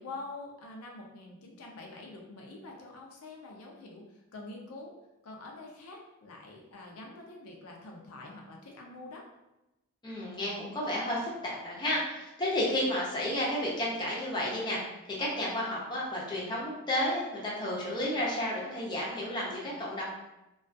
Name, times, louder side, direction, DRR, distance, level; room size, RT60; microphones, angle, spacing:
voice 1, 0.0-4.1 4.3-5.0 5.2-9.3, left 2 dB, 75° left, 0 dB, 0.4 m, -46 dB
voice 2, 10.0-14.8 15.1-20.0, left 1 dB, 20° left, -5 dB, 0.5 m, -32 dB
2.3 x 2.3 x 2.5 m, 0.95 s
head